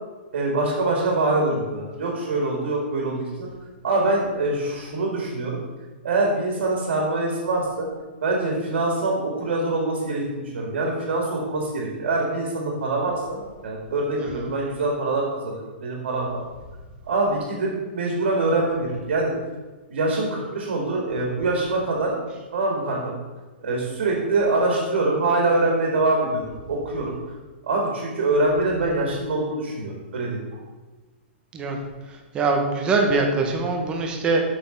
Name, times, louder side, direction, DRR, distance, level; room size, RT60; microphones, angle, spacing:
voice 1, 0.3-3.5 3.8-5.6 6.0-7.9 8.2-16.4 17.1-19.3 19.9-22.2 22.5-23.1 23.6-27.2 27.6-30.6, right 2 dB, 75° right, -1 dB, 2.3 m, -24 dB
voice 2, 14.2-14.5 31.5-31.8 32.1-34.4, right 3 dB, 15° right, 2 dB, 1.0 m, -23 dB
7.0 x 6.0 x 5.2 m, 1.3 s
hypercardioid pair, 165°, 6 cm